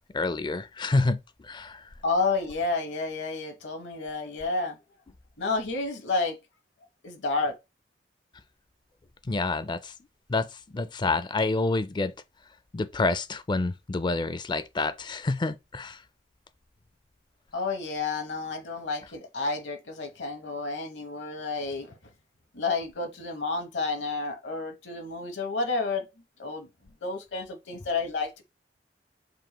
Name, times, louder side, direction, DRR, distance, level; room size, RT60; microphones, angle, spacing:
voice 1, 0.1-1.2 1.5-1.8 9.3-9.9 10.3-10.5 10.7-12.1 12.7-16.0, left 3 dB, 25° left, 0.4 m, -28 dB
voice 2, 2.0-4.8 5.4-6.4 7.0-7.6 17.5-22.0 22.5-26.1 26.4-26.7 27.0-28.4, left 3 dB, 85° left, 1.0 m, -30 dB
7.5 x 3.1 x 2.2 m
head